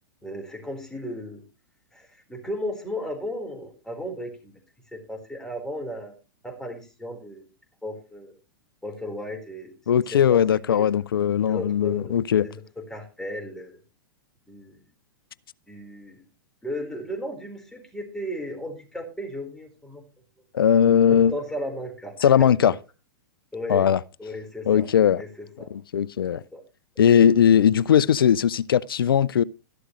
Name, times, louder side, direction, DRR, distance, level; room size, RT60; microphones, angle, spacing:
voice 1, 0.2-1.4 1.9-4.6 4.9-6.1 6.4-7.5 7.8-8.3 8.8-9.7 10.1-10.9 11.5-12.1 12.4-13.8 14.5-14.8 15.7-16.2 16.6-20.0 21.1-22.7 23.5-23.9 24.2-24.9 25.2-25.7 26.3-26.6, left 1 dB, 5° left, 4.2 m, -35 dB
voice 2, 9.9-12.5 20.5-21.3 22.2-22.7 23.7-24.0 24.7-25.2 25.7-26.4 27.0-29.4, left 9 dB, 80° left, 0.5 m, -19 dB
13.0 x 11.5 x 3.1 m
hypercardioid pair, 110°, 12 cm